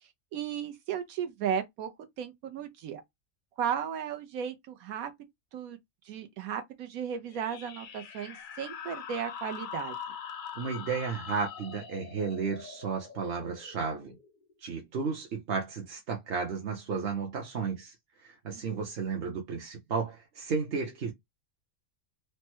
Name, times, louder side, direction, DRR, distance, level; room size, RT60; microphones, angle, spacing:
voice 1, 0.3-1.9 2.2-3.0 3.6-5.1 5.5-5.8 6.0-9.9 18.5-18.6, right 8 dB, 85° right, 1.1 m, -35 dB
sound 1, 7.3-14.5, left 7 dB, 60° left, 0.5 m, -43 dB
voice 2, 10.6-14.2 14.6-17.9 18.2-21.1, right 5 dB, 55° right, 0.8 m, -33 dB
3.2 x 2.1 x 2.9 m
omnidirectional pair, 1.5 m